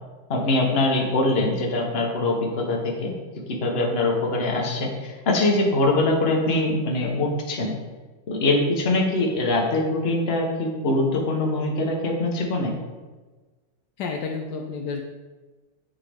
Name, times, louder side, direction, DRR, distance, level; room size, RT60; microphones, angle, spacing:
voice 1, 0.3-3.1 3.5-7.7 8.3-12.7, left 2 dB, 40° left, 0 dB, 0.9 m, -23 dB
voice 2, 14.0-15.0, left 5 dB, 85° left, 2 dB, 0.9 m, -30 dB
9.1 x 3.7 x 3.4 m, 1.3 s
omnidirectional pair, 2.3 m